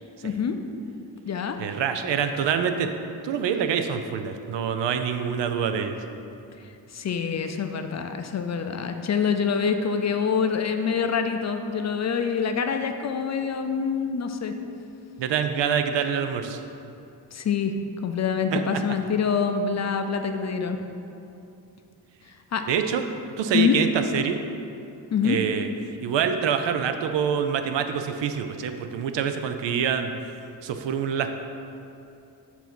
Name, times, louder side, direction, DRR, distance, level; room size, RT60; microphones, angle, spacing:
voice 1, 0.2-0.6 1.2-1.6 6.9-14.5 17.3-20.8 22.5-22.6 23.5-23.8 25.1-25.4, left 6 dB, 40° left, 6 dB, 0.4 m, -25 dB
voice 2, 1.6-2.9 3.2-6.0 15.2-16.6 18.5-18.6 22.7-23.0 23.4-23.9 24.1-24.4 25.2-25.7 26.0-30.1 30.6-31.3, right 7 dB, 80° right, 7 dB, 0.6 m, -26 dB
7.1 x 2.7 x 5.8 m, 2.7 s
cardioid pair, 85°, 43 cm